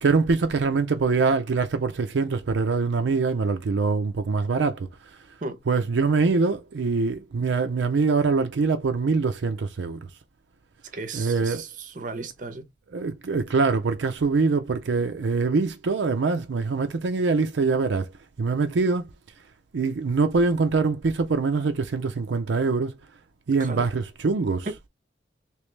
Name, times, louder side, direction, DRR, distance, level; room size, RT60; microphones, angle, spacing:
voice 1, 0.0-4.9 5.7-10.1 11.1-11.6 12.0-12.3 12.9-18.1 18.4-19.1 19.7-22.9 23.5-24.8, right 4 dB, 80° right, 0.5 m, -24 dB
voice 2, 10.9-12.7 23.6-23.9, right 3 dB, 45° right, 0.7 m, -35 dB
3.1 x 3.0 x 3.2 m
head